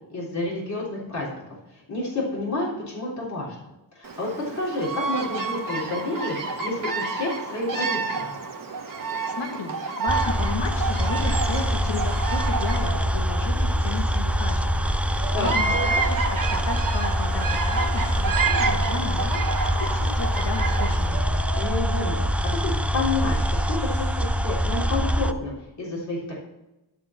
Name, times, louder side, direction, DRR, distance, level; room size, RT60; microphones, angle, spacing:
voice 1, 0.1-1.3 1.7-3.7 3.9-8.3 15.3-15.7 21.5-23.4 23.7-26.3, left 2 dB, 40° left, -6 dB, 3.3 m, -30 dB
Bird vocalization bird call bird song, 4.0-21.3, right 4 dB, 45° right, 1.3 m, -30 dB
voice 2, 9.0-19.4 19.9-21.3, left 5 dB, 70° left, 4 dB, 1.5 m, -34 dB
sound 1, 10.1-25.3, equal, 5° right, 0.4 m, -24 dB
sound 2, 10.7-25.2, right 2 dB, 65° right, 1.4 m, -39 dB
11.5 x 4.3 x 7.2 m, 0.97 s
wide cardioid pair, 115°, 44 cm